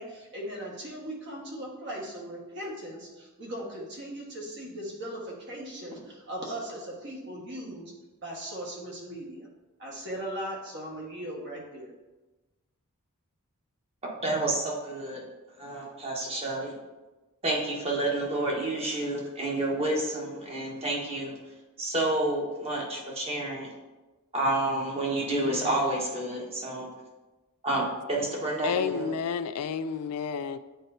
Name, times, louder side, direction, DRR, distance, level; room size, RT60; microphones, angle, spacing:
voice 1, 0.0-7.9 8.2-9.5 9.8-11.9, right 1 dB, 55° right, -2 dB, 1.6 m, -38 dB
voice 2, 14.0-15.2 15.6-16.8 17.4-21.4 21.8-23.7 24.3-26.9 27.6-29.1, right 2 dB, 25° right, -2 dB, 1.3 m, -29 dB
voice 3, 25.2-25.9 28.6-30.6, left 7 dB, 80° left, 12 dB, 0.3 m, -31 dB
9.0 x 4.4 x 2.7 m, 1.1 s
head